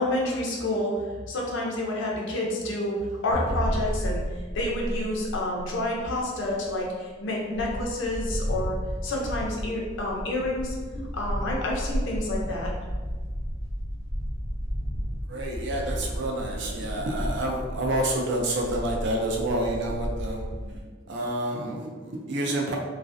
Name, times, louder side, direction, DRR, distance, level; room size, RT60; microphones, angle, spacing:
voice 1, 0.0-3.0 3.2-4.2 4.5-8.8 9.0-12.7 20.6-20.7, left 1 dB, 65° left, -2 dB, 0.5 m, -29 dB
sound 1, 3.3-6.0, equal, 45° right, 1.0 m, -30 dB
sound 2, 7.5-20.8, equal, 20° left, 0.7 m, -33 dB
voice 2, 15.3-20.5 21.1-22.8, right 1 dB, 65° right, 0 dB, 0.4 m, -28 dB
2.4 x 2.1 x 2.5 m, 1.4 s
head